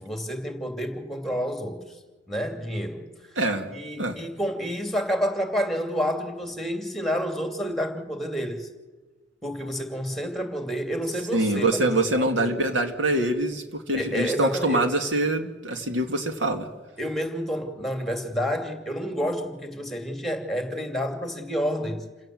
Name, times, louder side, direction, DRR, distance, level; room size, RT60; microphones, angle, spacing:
voice 1, 0.0-1.8 2.3-3.0 3.7-8.7 9.4-12.6 13.9-14.9 17.0-22.0, equal, ahead, 5 dB, 2.7 m, -29 dB
voice 2, 3.4-3.7 4.0-4.2 11.3-16.7, right 2 dB, 80° right, 6 dB, 2.2 m, -24 dB
28.5 x 17.0 x 7.8 m, 1.2 s
head